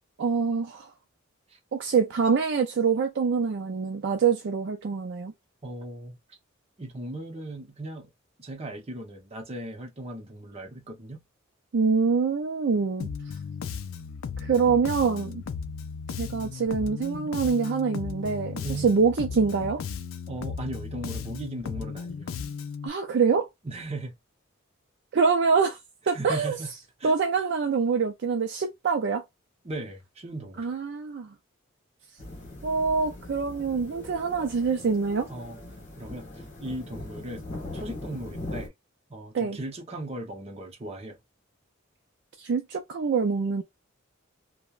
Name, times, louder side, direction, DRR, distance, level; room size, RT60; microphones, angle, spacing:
voice 1, 0.2-0.9 1.7-5.3 11.7-13.1 14.4-15.4 16.2-19.8 22.8-23.5 25.1-25.8 26.1-26.6 27.0-29.2 30.6-31.3 32.6-35.3 39.3-39.6 42.4-43.6, right 5 dB, 55° right, 0.4 m, -25 dB
voice 2, 5.6-6.4 6.8-8.1 8.4-11.2 18.6-18.9 20.3-22.3 23.6-24.1 26.1-26.7 27.0-27.1 29.6-30.7 35.3-35.6 36.0-37.5 37.7-38.7 39.1-41.2, right 1 dB, 30° right, 0.7 m, -37 dB
Bass guitar, 13.0-22.9, left 6 dB, 75° left, 0.4 m, -36 dB
sound 1, 32.2-38.7, left 1 dB, 35° left, 1.2 m, -40 dB
3.0 x 2.1 x 2.3 m
head